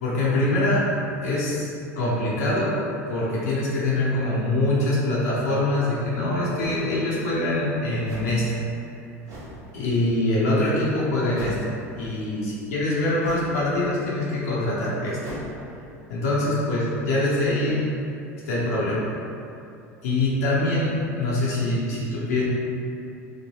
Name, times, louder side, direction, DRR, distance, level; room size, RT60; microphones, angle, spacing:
voice 1, 0.0-0.8 1.2-2.8 3.1-8.6 9.7-11.6 11.9-15.2 16.1-17.8 18.5-19.1 20.0-22.5, left 1 dB, 80° left, -7 dB, 0.7 m, -24 dB
sound 1, 6.6-6.8 8.0-8.4 9.2-9.6 11.3-11.7 13.2-13.6 15.2-15.5, right 1 dB, 45° right, 0.9 m, -38 dB
3.1 x 2.2 x 3.0 m, 2.6 s
hypercardioid pair, 80°, 8 cm